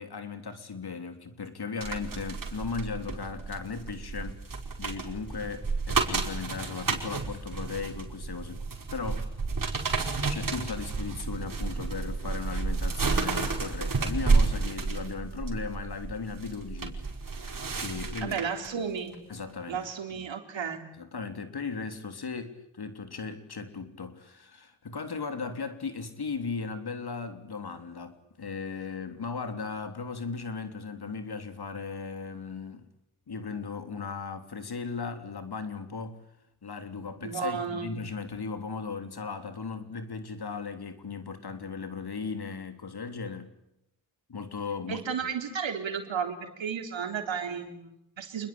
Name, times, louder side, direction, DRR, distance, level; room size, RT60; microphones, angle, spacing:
voice 1, 0.0-4.4 4.8-9.3 10.3-17.0 17.8-18.4 18.7-18.9 19.3-20.3 21.0-32.9 33.3-36.2 36.6-43.5 44.3-45.3, left 5 dB, 50° left, 3.4 m, -37 dB
sound 1, 1.8-18.7 19.1-19.3, right 4 dB, 40° right, 5.1 m, -31 dB
voice 2, 18.2-19.2 19.7-20.9 37.2-38.0 44.9-48.5, right 7 dB, 65° right, 4.0 m, -33 dB
28.5 x 21.0 x 8.8 m
supercardioid pair, 45°, 49 cm